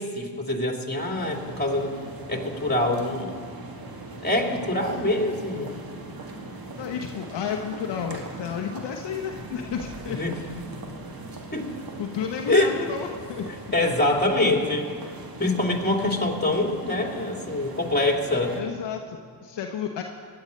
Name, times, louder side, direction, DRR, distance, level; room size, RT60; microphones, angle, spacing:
voice 1, 0.0-1.9 2.3-3.3 4.2-5.7 10.1-10.4 11.5-11.7 12.5-12.7 13.7-14.9 15.4-18.5, left 2 dB, 20° left, 1 dB, 2.9 m, -24 dB
sound 1, 1.0-18.6, right 2 dB, 45° right, 2.2 m, -40 dB
voice 2, 6.8-10.2 12.0-13.5 18.5-20.0, left 7 dB, 60° left, 3 dB, 1.0 m, -32 dB
16.0 x 11.5 x 5.3 m, 2.1 s
hypercardioid pair, 45°, 48 cm